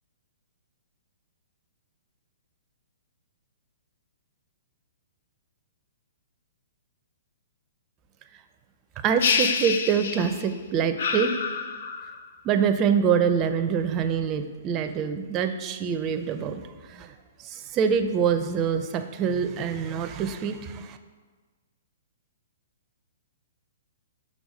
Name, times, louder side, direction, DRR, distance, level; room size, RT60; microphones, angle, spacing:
voice 1, 9.0-11.4 12.4-16.6 16.9-17.1 17.4-21.0, right 7 dB, 30° right, 9 dB, 0.4 m, -25 dB
sound 1, 9.2-10.5 11.0-12.2, left 5 dB, 65° left, 0.5 m, -27 dB
6.3 x 3.3 x 5.3 m, 1.4 s
hypercardioid pair, 130°, 0 cm